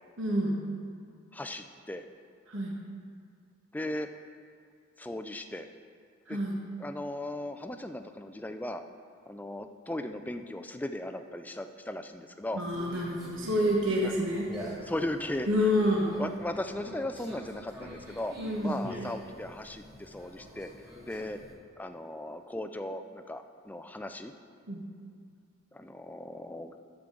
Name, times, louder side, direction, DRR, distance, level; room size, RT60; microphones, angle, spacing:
voice 1, 0.2-0.6 2.5-2.7 6.3-6.6 12.5-14.5 15.5-16.1 18.4-18.8 24.7-24.8, equal, 65° right, -2 dB, 1.1 m, -28 dB
voice 2, 1.3-2.1 3.7-4.1 5.0-5.7 6.3-6.4 6.8-8.8 9.3-12.6 14.0-14.1 14.8-15.7 16.2-18.3 18.6-21.4 21.8-24.3 25.7-26.7, left 1 dB, 10° left, 8 dB, 0.3 m, -37 dB
Conversation, 12.7-21.5, equal, 15° right, 1.9 m, -46 dB
12.0 x 7.4 x 3.8 m, 2.2 s
head